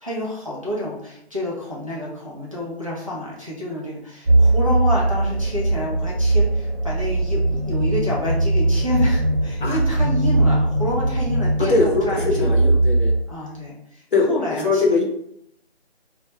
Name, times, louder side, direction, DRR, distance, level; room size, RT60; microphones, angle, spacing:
voice 1, 0.0-12.6 13.3-15.0, left 1 dB, 30° right, -6 dB, 0.4 m, -29 dB
sound 1, 4.2-13.2, right 2 dB, 75° right, 0.8 m, -20 dB
voice 2, 11.6-13.1 14.1-15.0, left 3 dB, 50° left, -1 dB, 0.6 m, -21 dB
2.1 x 2.0 x 2.9 m, 0.74 s
figure-of-eight pair, 160°, 33 cm